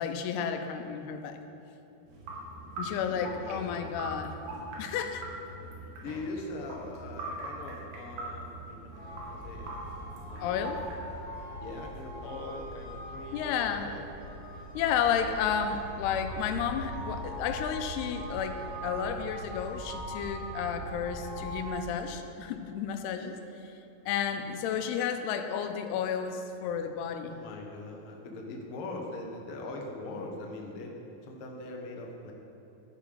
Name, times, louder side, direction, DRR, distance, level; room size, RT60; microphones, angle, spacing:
voice 1, 0.0-1.4 2.8-4.3 4.8-5.3 10.4-10.8 13.3-13.9 14.7-18.6 18.8-23.4 23.6-23.7 24.1-27.4, left 7 dB, 85° left, 7 dB, 2.7 m, -32 dB
sound 1, 2.1-11.0, right 1 dB, 80° right, 3.8 m, -42 dB
voice 2, 3.1-4.1 5.5-9.8 10.3-10.9 11.5-13.4 13.7-14.1 27.3-32.3, left 2 dB, 65° left, 0 dB, 1.4 m, -42 dB
sound 2, 8.9-21.7, right 1 dB, 65° right, 5.3 m, -41 dB
12.0 x 9.8 x 5.5 m, 2.9 s
omnidirectional pair, 4.6 m